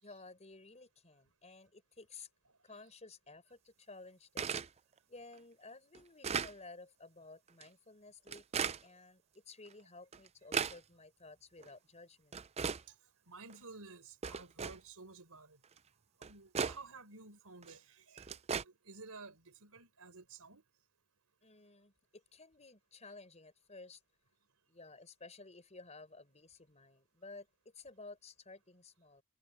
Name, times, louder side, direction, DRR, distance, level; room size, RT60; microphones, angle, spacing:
voice 1, 0.0-2.3 2.6-4.5 5.1-12.4 21.4-24.0 24.7-27.5 27.7-29.2, left 3 dB, 30° left, 4.7 m, -54 dB
sound 1, 4.4-4.7 5.3-5.4 5.9-6.5 7.5-7.6 8.3-8.8 9.7-9.8 10.1-10.8 11.6-11.7 12.3-12.8 13.5-13.6 14.2-14.8 15.8-15.9 16.2-16.8 17.6-17.7 18.2-18.6, right 6 dB, 30° right, 0.5 m, -36 dB
voice 2, 13.3-15.6 16.2-18.3 18.6-20.6, right 4 dB, 80° right, 4.3 m, -53 dB
head